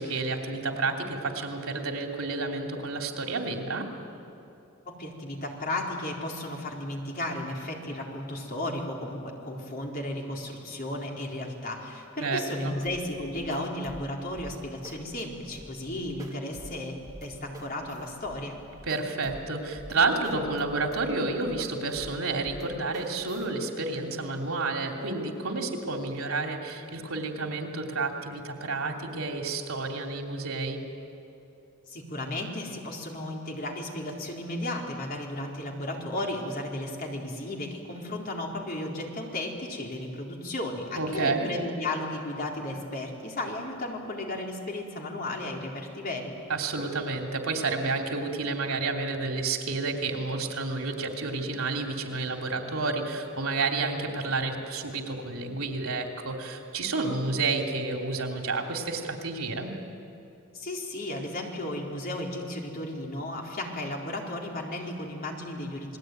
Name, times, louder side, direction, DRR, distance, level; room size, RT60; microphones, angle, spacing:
voice 1, 0.0-3.9 12.2-12.7 18.8-30.8 41.0-41.5 46.5-59.7, right 3 dB, 80° right, 2 dB, 3.1 m, -30 dB
voice 2, 4.9-18.6 31.9-46.4 60.5-66.0, left 1 dB, 45° left, 0 dB, 4.0 m, -34 dB
sound 1, 12.8-23.5, right 1 dB, 15° right, 2.3 m, -48 dB
28.5 x 20.5 x 9.3 m, 2.7 s
head